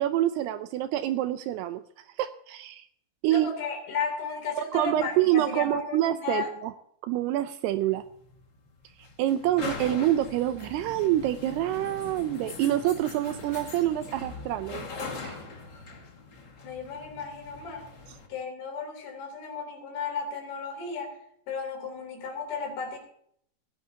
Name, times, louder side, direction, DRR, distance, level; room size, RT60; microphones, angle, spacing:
voice 1, 0.0-1.8 2.2-2.9 3.2-3.5 4.7-6.7 7.0-8.1 9.2-14.9 15.2-15.4, right 13 dB, 80° right, 11 dB, 2.5 m, -26 dB
voice 2, 3.3-6.5 16.6-17.9 18.3-21.2 21.5-23.0, left 5 dB, 65° left, 2 dB, 5.3 m, -34 dB
sound 1, 7.6-18.3, left 3 dB, 85° left, 0.9 m, -41 dB
18.0 x 16.0 x 2.8 m, 0.68 s
omnidirectional pair, 5.1 m